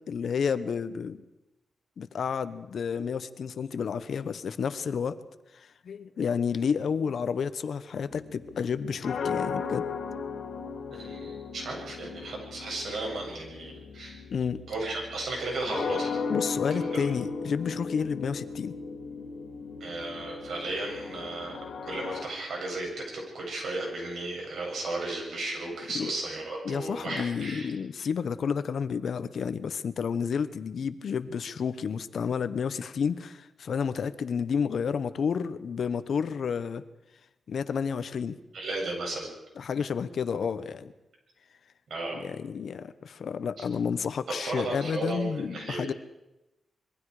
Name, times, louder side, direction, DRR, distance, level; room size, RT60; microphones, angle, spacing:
voice 1, 0.1-1.2 2.0-5.2 5.5-9.9 14.3-14.6 16.3-18.7 25.9-26.1 26.6-36.8 37.5-38.3 39.6-40.9 42.1-45.9, left 6 dB, 65° left, 13 dB, 1.0 m, -30 dB
sound 1, 8.1-22.3, left 5 dB, 90° left, 2.6 m, -36 dB
voice 2, 10.9-14.2 14.7-16.2 16.7-17.1 19.8-27.7 38.5-39.3 41.9-42.2 44.3-45.9, right 2 dB, 70° right, 0 dB, 7.9 m, -34 dB
26.0 x 22.0 x 5.0 m, 0.95 s
wide cardioid pair, 150°, 0 cm